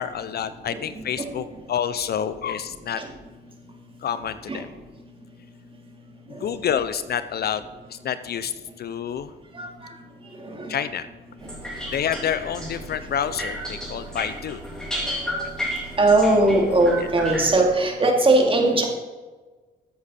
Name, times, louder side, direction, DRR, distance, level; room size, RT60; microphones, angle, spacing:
voice 1, 0.0-3.0 4.0-4.7 6.3-9.3 10.7-11.1 11.9-14.6 15.1-15.2, left 8 dB, 55° left, 13 dB, 0.5 m, -28 dB
voice 2, 10.4-10.7 15.1-15.2 15.4-15.5 16.0-18.9, right 2 dB, 25° right, 1 dB, 2.4 m, -20 dB
sound 1, 11.4-17.6, equal, 5° left, 3.4 m, -33 dB
13.5 x 8.3 x 4.2 m, 1.3 s
cardioid pair, 90°, 20 cm